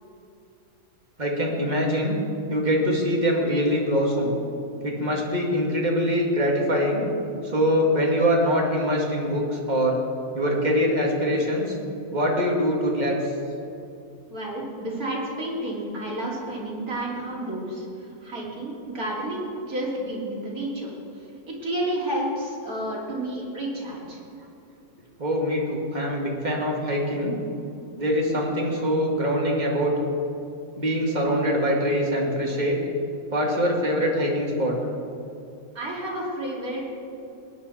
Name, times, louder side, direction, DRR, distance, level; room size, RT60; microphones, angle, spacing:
voice 1, 1.2-2.2 2.5-4.3 4.8-7.0 7.4-10.0 10.3-11.7 12.1-13.2 25.2-27.3 28.0-29.9 30.8-32.8 33.3-34.8, equal, 25° right, -2 dB, 2.2 m, -23 dB
voice 2, 14.3-20.9 21.5-24.2 35.7-36.9, right 1 dB, 60° right, -4 dB, 3.3 m, -31 dB
19.5 x 10.0 x 4.3 m, 2.6 s
omnidirectional pair, 1.7 m